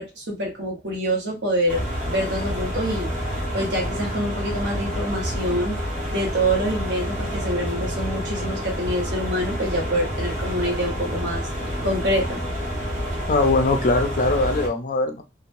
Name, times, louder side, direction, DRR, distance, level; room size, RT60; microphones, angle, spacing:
voice 1, 0.0-3.1 3.5-5.8 6.1-11.5 11.8-12.4, equal, 65° right, 0 dB, 1.0 m, -26 dB
sound 1, 1.7-14.7, equal, 45° right, 1.3 m, -28 dB
voice 2, 13.3-15.2, left 2 dB, 45° left, 7 dB, 0.4 m, -21 dB
2.9 x 2.1 x 2.6 m, 0.25 s
head